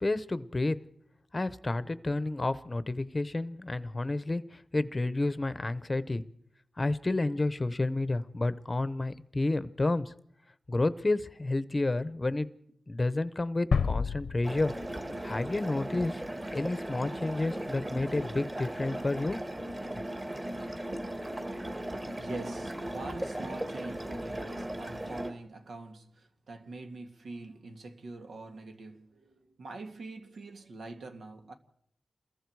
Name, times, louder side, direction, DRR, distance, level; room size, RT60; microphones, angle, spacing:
voice 1, 0.0-0.8 1.3-6.2 6.8-10.1 10.7-12.5 12.9-14.7 15.2-16.2 16.5-19.4, left 2 dB, 25° left, 0.8 m, -30 dB
sound 1, 13.7-15.6, left 5 dB, 85° left, 0.8 m, -30 dB
sound 2, 14.4-25.3, right 1 dB, 20° right, 1.9 m, -37 dB
voice 2, 21.5-31.5, right 3 dB, 90° right, 2.1 m, -44 dB
29.0 x 22.0 x 4.7 m
wide cardioid pair, 160°, 0 cm